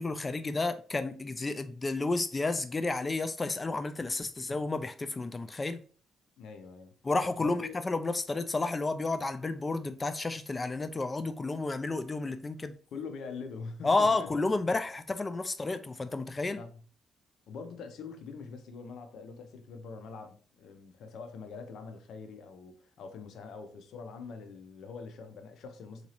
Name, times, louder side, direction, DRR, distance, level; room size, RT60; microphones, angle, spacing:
voice 1, 0.0-5.8 7.0-12.7 13.8-16.6, left 3 dB, 25° left, 0.3 m, -31 dB
voice 2, 6.4-6.9 7.4-7.8 12.9-14.3 16.5-16.8 17.5-26.1, left 5 dB, 75° left, 0.6 m, -44 dB
3.9 x 2.6 x 3.0 m
cardioid pair, 90°, 0 cm